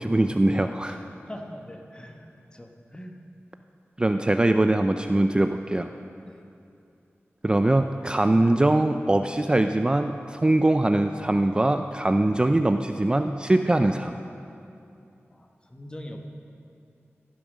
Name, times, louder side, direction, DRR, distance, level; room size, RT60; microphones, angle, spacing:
voice 1, 0.0-1.0 4.0-5.9 7.4-14.2, right 1 dB, 20° right, 7 dB, 0.3 m, -22 dB
voice 2, 0.8-3.2 6.2-6.4 15.3-16.3, equal, 20° left, 3 dB, 1.1 m, -42 dB
15.5 x 7.0 x 6.4 m, 2.6 s
wide cardioid pair, 80°, 5 cm